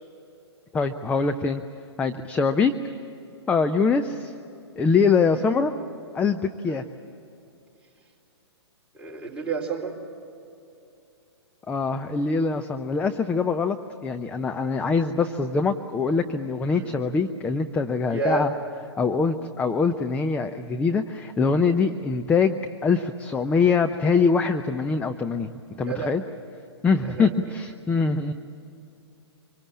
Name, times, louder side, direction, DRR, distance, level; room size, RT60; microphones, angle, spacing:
voice 1, 0.7-1.6 2.0-2.7 3.5-4.3 4.8-5.7 6.1-6.8 11.7-13.8 14.0-18.5 19.0-25.5 25.8-26.2 26.8-28.3, left 5 dB, 10° left, 7 dB, 0.6 m, -23 dB
voice 2, 8.9-10.0 16.7-16.9 18.1-18.5 25.8-26.2 27.1-27.4, right 4 dB, 5° right, -4 dB, 3.9 m, -30 dB
25.0 x 24.5 x 8.6 m, 2.7 s
figure-of-eight pair, 120°, 14 cm